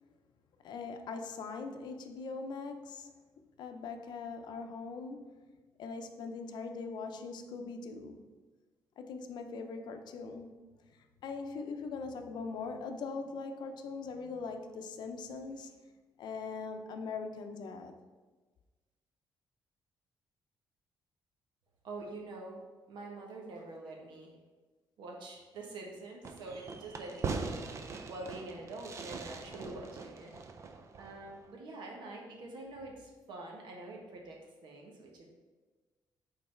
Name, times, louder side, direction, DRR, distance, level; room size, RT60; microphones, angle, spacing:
voice 1, 0.6-3.1 3.6-5.4 5.8-8.2 9.0-10.5 10.9-15.8 16.2-17.9, left 4 dB, 70° left, 6 dB, 0.6 m, -41 dB
voice 2, 21.8-22.6 22.9-24.3 25.0-30.3 31.0-35.2, right 2 dB, 80° right, 0 dB, 1.3 m, -46 dB
Fireworks, 26.2-31.5, right 4 dB, 40° right, 0.5 m, -41 dB
5.5 x 4.0 x 4.4 m, 1.3 s
cardioid pair, 145°, 8 cm